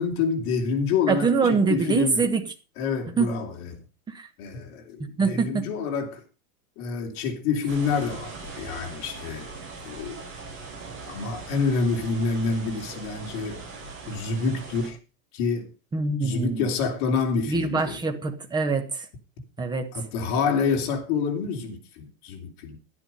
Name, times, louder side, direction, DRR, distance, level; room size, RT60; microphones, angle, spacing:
voice 1, 0.0-2.3 2.8-3.7 4.4-6.2 6.8-9.5 9.8-10.2 11.1-13.6 14.1-15.0 15.3-15.7 16.2-18.0 19.9-22.8, left 5 dB, 45° left, 3.4 m, -27 dB
voice 2, 1.1-2.4 3.2-3.3 4.1-4.3 5.2-5.7 15.9-16.7 17.5-19.1 19.6-19.9, right 4 dB, 10° right, 1.3 m, -24 dB
sound 1, 7.7-14.9, right 3 dB, 25° right, 7.9 m, -40 dB
12.0 x 10.5 x 5.5 m
supercardioid pair, 170°, 44 cm